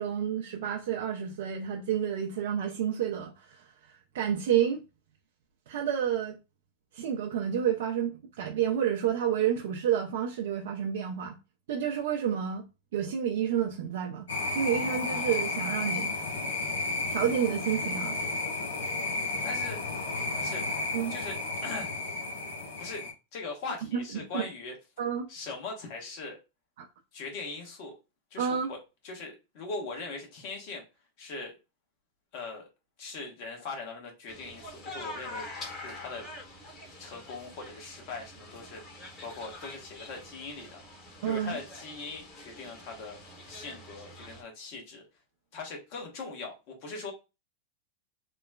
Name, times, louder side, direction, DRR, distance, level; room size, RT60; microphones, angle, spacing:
voice 1, 0.0-4.8 5.7-6.3 6.9-11.3 11.7-12.6 12.9-16.1 17.1-18.2 20.9-21.1 23.9-24.0 24.3-24.5 25.0-25.3 26.8-26.9 28.4-28.7 41.2-41.6, right 9 dB, 65° right, 0.4 m, -30 dB
sound 1, 14.3-23.1, left 3 dB, 75° left, 0.7 m, -32 dB
voice 2, 19.4-20.8 21.1-21.4 21.6-21.9 22.8-23.0 23.3-24.8 25.3-26.4 27.1-27.9 28.3-28.8 29.0-30.8 31.2-31.6 32.3-32.7 33.0-35.5 35.8-36.3 37.0-38.8 39.2-40.8 41.3-43.2 43.5-45.0 45.5-47.1, left 3 dB, 55° left, 1.1 m, -40 dB
sound 2, 34.3-44.4, left 2 dB, 35° left, 1.2 m, -45 dB
3.0 x 2.2 x 2.2 m
hypercardioid pair, 100°, 0 cm